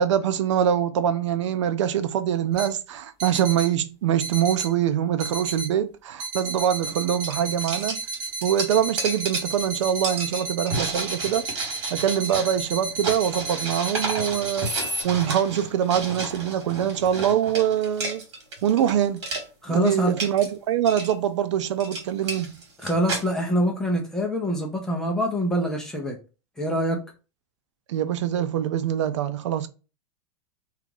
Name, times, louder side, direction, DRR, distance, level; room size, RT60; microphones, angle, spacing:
voice 1, 0.0-8.0 8.4-11.4 11.9-14.7 15.0-18.2 18.6-19.3 19.7-22.6 27.9-29.7, right 9 dB, 80° right, 0.5 m, -24 dB
sound 1, 2.5-2.7 3.2-3.7 4.2-4.7 5.2-5.7 6.2-15.0, right 3 dB, 25° right, 0.7 m, -32 dB
sound 2, 6.8-7.0 7.2-18.9 19.2-19.5 19.9-20.5 20.9-21.1 21.6-23.3, right 3 dB, 65° right, 1.7 m, -32 dB
voice 2, 19.6-20.1 22.8-26.2 26.6-27.0, equal, 5° left, 0.4 m, -25 dB
2.8 x 2.4 x 3.6 m
supercardioid pair, 170°, 15 cm